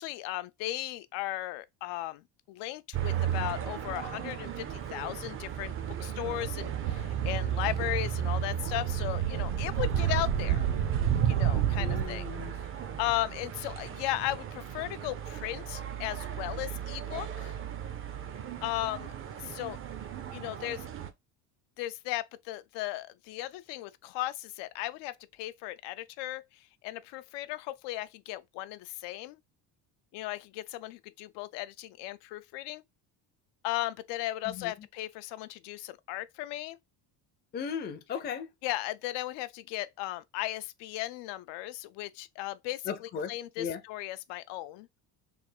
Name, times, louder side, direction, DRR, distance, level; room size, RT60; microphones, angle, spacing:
voice 1, 0.0-2.2 2.5-10.7 11.3-12.3 12.7-17.6 18.6-19.1 19.4-19.8 20.3-20.8 21.8-29.4 30.1-32.8 33.6-36.8 38.6-44.9, left 16 dB, 80° left, 0.5 m, -36 dB
sound 1, 2.9-21.1, right 9 dB, 30° right, 0.5 m, -36 dB
sound 2, 6.2-12.0, right 9 dB, 60° right, 0.7 m, -30 dB
voice 2, 11.8-12.6 34.5-34.7 37.5-38.5 42.9-43.8, left 7 dB, 25° left, 0.5 m, -37 dB
3.4 x 2.3 x 4.3 m
cardioid pair, 145°, 41 cm